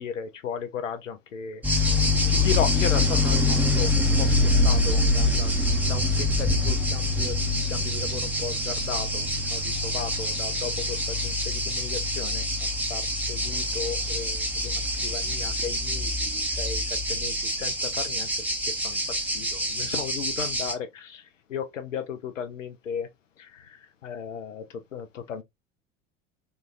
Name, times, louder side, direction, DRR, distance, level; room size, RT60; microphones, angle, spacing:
voice 1, 0.0-5.5 5.8-23.1 23.4-25.4, left 7 dB, 80° left, 0.6 m, -36 dB
sound 1, 1.6-20.7, left 2 dB, 5° right, 0.7 m, -25 dB
3.8 x 2.3 x 2.4 m
figure-of-eight pair, 70°, 37 cm